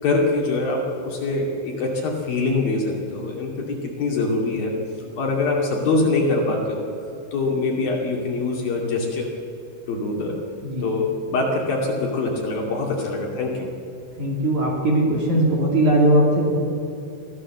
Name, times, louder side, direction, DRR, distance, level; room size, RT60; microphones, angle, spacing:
voice 1, 0.0-4.7 5.2-6.9 7.3-9.3 9.9-10.4 10.8-13.7, left 3 dB, 50° left, -1 dB, 3.9 m, -24 dB
voice 2, 14.2-16.6, right 1 dB, 45° right, -1 dB, 3.5 m, -19 dB
23.5 x 16.0 x 7.5 m, 2.8 s
omnidirectional pair, 5.8 m